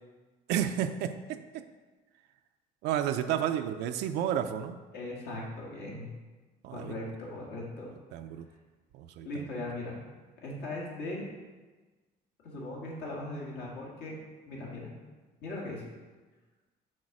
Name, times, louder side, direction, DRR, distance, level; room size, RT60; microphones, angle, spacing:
voice 1, 0.5-1.6 2.8-4.8 6.6-7.0 8.1-8.5 8.9-9.5, right 10 dB, 85° right, 7 dB, 0.4 m, -31 dB
voice 2, 4.9-6.1 6.7-7.9 9.2-10.0 10.4-11.3 12.4-14.2 14.5-14.9 15.4-15.8, left 2 dB, 80° left, -3 dB, 2.1 m, -39 dB
6.4 x 4.1 x 6.0 m, 1.3 s
cardioid pair, 110°, 17 cm